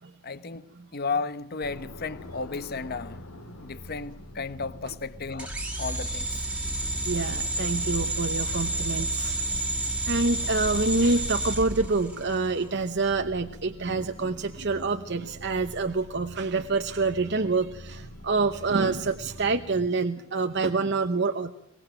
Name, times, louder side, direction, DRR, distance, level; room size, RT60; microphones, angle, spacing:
voice 1, 0.2-0.6 0.9-3.3 3.6-5.5 5.8-6.4 7.6-7.7, left 4 dB, 45° left, 14 dB, 0.9 m, -33 dB
sound 1, 1.6-19.9, left 1 dB, 80° left, 2.1 m, -45 dB
sound 2, 5.4-12.5, right 2 dB, 5° right, 2.0 m, -30 dB
voice 2, 7.0-9.6 10.1-21.5, right 3 dB, 55° right, 7 dB, 1.0 m, -27 dB
23.5 x 20.0 x 9.0 m, 0.79 s
head